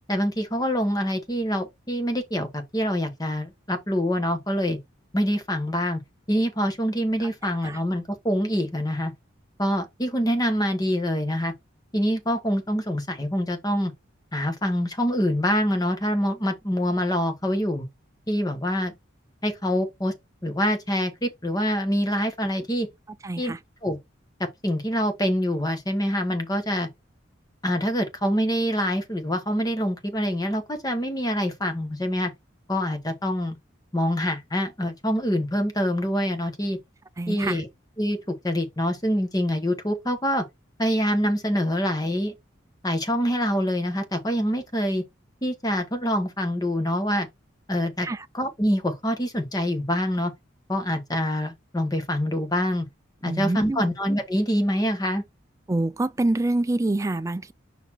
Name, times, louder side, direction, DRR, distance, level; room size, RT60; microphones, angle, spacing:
voice 1, 0.1-4.8 5.1-6.0 6.3-9.1 9.6-11.5 11.9-13.9 14.3-17.8 18.3-18.9 19.4-20.1 20.4-22.9 23.4-23.6 23.8-24.0 24.6-26.9 27.6-32.3 32.7-33.6 33.9-36.8 37.3-37.7 38.0-38.2 38.4-40.4 40.8-42.3 42.8-45.0 45.4-47.3 47.7-48.1 48.3-50.3 50.7-52.9 53.2-55.2, equal, 20° left, 1.1 m, -25 dB
voice 2, 7.4-7.8 23.2-23.6 37.2-37.6 48.0-48.3 53.2-53.9 55.7-57.5, right 2 dB, 15° right, 0.3 m, -26 dB
5.5 x 4.1 x 4.3 m
head